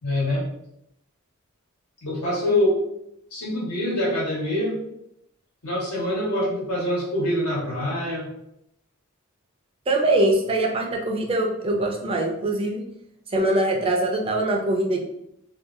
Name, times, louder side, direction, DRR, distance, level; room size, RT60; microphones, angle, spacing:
voice 1, 0.0-0.4 2.0-2.8 3.3-4.8 5.6-8.3, left 1 dB, 80° left, -6 dB, 1.3 m, -25 dB
voice 2, 9.9-12.8 13.3-15.0, right 2 dB, 25° right, 2 dB, 0.4 m, -23 dB
2.7 x 2.3 x 2.5 m, 0.78 s
head